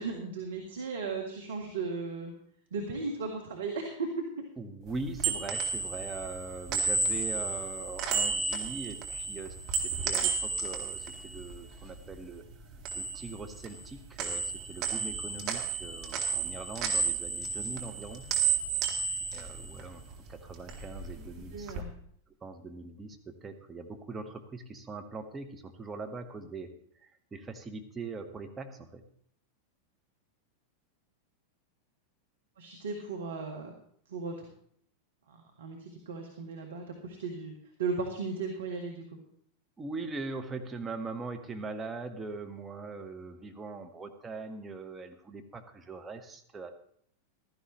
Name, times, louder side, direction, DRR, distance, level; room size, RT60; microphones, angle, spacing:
voice 1, 0.0-2.3 2.7-4.1 21.5-21.9 32.6-33.7 34.1-34.5 35.3-37.5 37.8-39.0, right 4 dB, 65° right, 2 dB, 1.7 m, -36 dB
voice 2, 4.6-12.4 12.9-18.2 19.3-21.7 22.4-26.7 27.0-29.0 39.8-46.7, right 3 dB, 15° right, 6 dB, 1.4 m, -41 dB
sound 1, 4.9-12.2 12.5-13.9 14.2-20.2 20.5-21.8, right 5 dB, 40° right, 2.2 m, -32 dB
15.5 x 13.5 x 3.2 m, 0.64 s
figure-of-eight pair, 90°, 0 cm